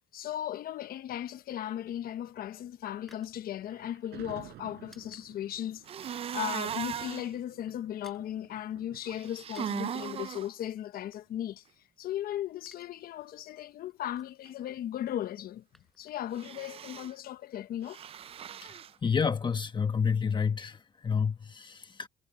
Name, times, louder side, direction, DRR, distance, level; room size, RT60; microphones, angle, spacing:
voice 1, 0.1-11.6 12.0-15.6 16.0-18.0, left 11 dB, 60° left, 1.0 m, -37 dB
sound 1, 2.7-5.3 5.5-5.7 6.1-6.8 7.0-7.2 7.5-8.3 9.3-10.0 10.7-12.1 12.4-12.9 13.2-13.3 13.7-14.5 15.2-16.5 16.7-16.8, equal, ahead, 6.8 m, -62 dB
Thunder, 3.7-10.9, right 15 dB, 75° right, 7.7 m, -53 dB
sound 2, 5.9-7.3 9.1-10.5 16.3-17.1 17.9-18.9, right 9 dB, 35° right, 0.4 m, -37 dB
voice 2, 18.6-22.1, left 6 dB, 25° left, 1.2 m, -30 dB
cardioid pair, 110°, 17 cm